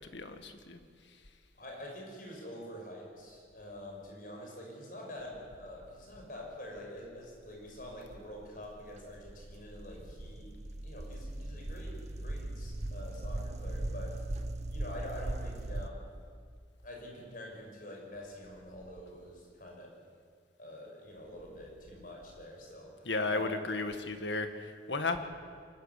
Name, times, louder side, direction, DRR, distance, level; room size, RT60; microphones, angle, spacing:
voice 1, 0.1-0.8 23.1-25.2, left 3 dB, 80° left, 7 dB, 1.8 m, -34 dB
voice 2, 1.6-10.5 10.8-12.0 12.2-14.2 14.7-16.1 16.8-19.9 20.6-23.5, left 1 dB, 50° left, -1 dB, 6.3 m, -46 dB
sound 1, 7.3-15.9, right 1 dB, 40° right, 0.8 m, -39 dB
24.0 x 14.0 x 9.9 m, 2.1 s
head